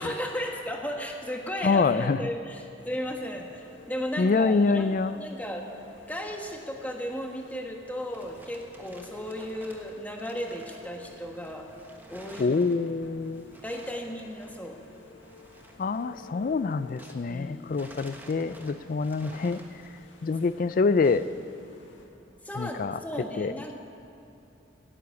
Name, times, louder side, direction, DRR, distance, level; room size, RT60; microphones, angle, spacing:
voice 1, 0.0-5.6 6.1-11.6 12.1-12.6 13.6-14.8 17.3-17.7 22.4-23.7, equal, 10° left, 1 dB, 1.3 m, -35 dB
voice 2, 1.6-2.2 4.2-5.2 12.4-13.4 15.8-19.6 20.2-21.3 22.5-23.0 23.4-23.5, left 4 dB, 45° left, 14 dB, 0.3 m, -26 dB
sound 1, 2.8-22.0, left 5 dB, 75° left, 1.9 m, -54 dB
sound 2, 8.1-17.4 17.7-21.4, right 1 dB, 10° right, 1.2 m, -52 dB
17.5 x 9.9 x 7.1 m, 2.7 s
head